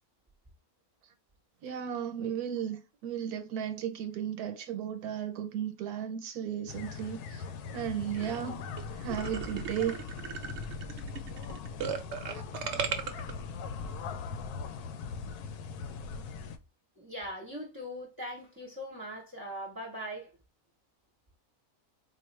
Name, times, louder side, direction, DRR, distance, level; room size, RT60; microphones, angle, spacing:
voice 1, 1.6-7.4 7.7-8.6 8.9-10.0, right 9 dB, 80° right, 1.2 m, -35 dB
sound 1, 6.7-16.6, left 5 dB, 85° left, 1.1 m, -40 dB
sound 2, 8.2-8.4 8.8-8.9 9.1-13.3, right 6 dB, 60° right, 0.8 m, -36 dB
voice 2, 17.0-20.4, equal, 20° right, 0.7 m, -41 dB
4.0 x 2.4 x 3.1 m
omnidirectional pair, 1.6 m